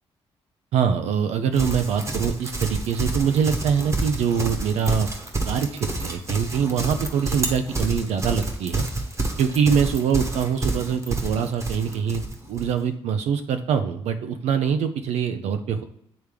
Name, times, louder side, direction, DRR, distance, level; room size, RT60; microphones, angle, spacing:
voice 1, 0.7-5.1 5.5-8.8 9.4-12.2 12.5-15.8, right 7 dB, 80° right, 7 dB, 0.4 m, -24 dB
Livestock farm animals working animals, 1.5-12.7, right 2 dB, 25° right, 1.0 m, -29 dB
8.8 x 3.4 x 3.3 m, 0.74 s
cardioid pair, 75°, 11 cm